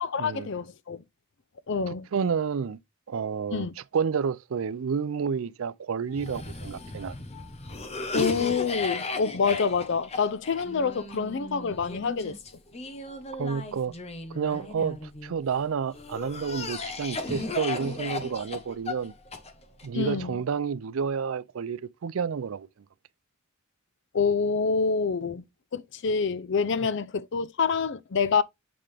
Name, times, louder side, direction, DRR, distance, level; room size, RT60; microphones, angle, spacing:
voice 1, 0.0-1.0 1.7-2.1 3.5-3.7 8.1-12.3 19.9-20.4 24.1-25.5 25.7-28.4, left 5 dB, 60° left, 0.5 m, -27 dB
voice 2, 1.9-2.8 3.1-3.7 3.9-7.1 13.4-13.9 14.3-19.1 19.8-22.7, right 6 dB, 80° right, 0.4 m, -30 dB
Cough, 6.1-15.3 15.9-19.9, left 3 dB, 30° left, 1.0 m, -36 dB
7.8 x 3.6 x 3.3 m
head